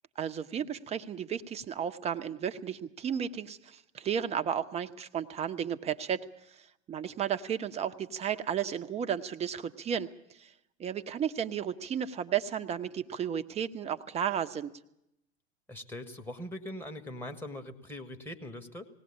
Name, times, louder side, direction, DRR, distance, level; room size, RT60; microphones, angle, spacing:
voice 1, 0.2-6.2 6.9-10.1 10.4-10.5 10.8-14.7, right 8 dB, 20° right, 11 dB, 0.8 m, -33 dB
voice 2, 15.7-18.9, left 1 dB, 5° left, 4 dB, 1.6 m, -41 dB
19.5 x 17.0 x 8.6 m, 0.81 s
figure-of-eight pair, 95°, 33 cm